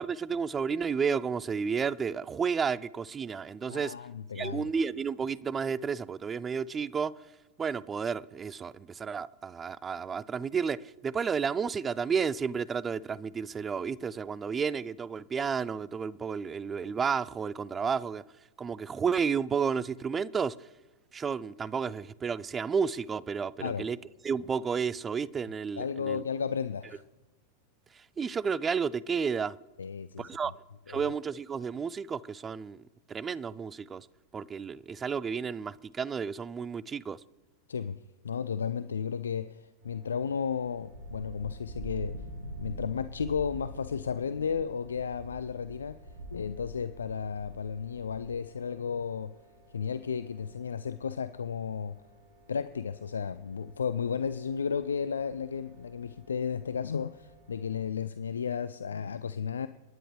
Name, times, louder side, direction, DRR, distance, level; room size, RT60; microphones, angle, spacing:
voice 1, 0.0-4.0 4.4-7.2 7.6-18.2 18.6-20.7 21.1-24.0 24.2-26.2 27.9-29.6 30.2-30.5 30.9-32.8 33.1-34.1 34.3-37.2, right 6 dB, 20° right, 0.4 m, -32 dB
voice 2, 3.7-4.7 23.6-23.9 25.8-27.0 29.8-30.3 30.9-31.0 37.7-38.0 38.2-42.2 42.6-46.0 46.3-49.3 49.7-52.0 52.5-59.7, left 6 dB, 70° left, 0.4 m, -33 dB
sound 1, 39.8-57.8, right 1 dB, 55° right, 6.2 m, -59 dB
sound 2, 40.9-48.3, right 1 dB, 80° right, 1.9 m, -44 dB
30.0 x 10.0 x 3.2 m
figure-of-eight pair, 90°, 0 cm